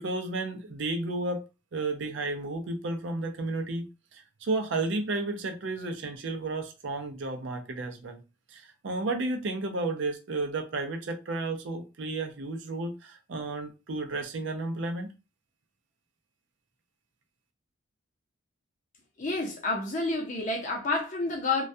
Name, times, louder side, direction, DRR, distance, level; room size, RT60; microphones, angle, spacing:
voice 1, 0.0-1.4 1.7-3.9 4.1-8.2 8.5-15.1, right 2 dB, 65° right, 0.5 m, -32 dB
voice 2, 19.2-21.6, left 3 dB, 40° left, 0.5 m, -29 dB
2.2 x 2.1 x 2.6 m
head